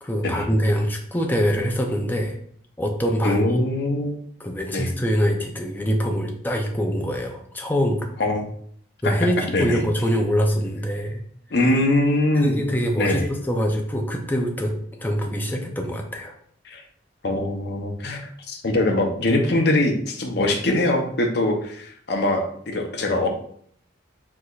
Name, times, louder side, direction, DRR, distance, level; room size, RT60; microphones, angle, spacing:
voice 1, 0.0-2.4 2.8-3.6 4.4-8.2 9.0-11.2 12.4-16.3, equal, 10° left, 2 dB, 0.5 m, -24 dB
voice 2, 3.2-4.2 4.7-4.9 8.2-8.5 9.0-9.1 9.5-9.8 11.5-12.7 13.0-13.3 16.7-16.8 17.2-18.2 18.5-23.3, left 1 dB, 55° left, 3 dB, 0.7 m, -22 dB
4.7 x 3.9 x 2.4 m, 0.63 s
head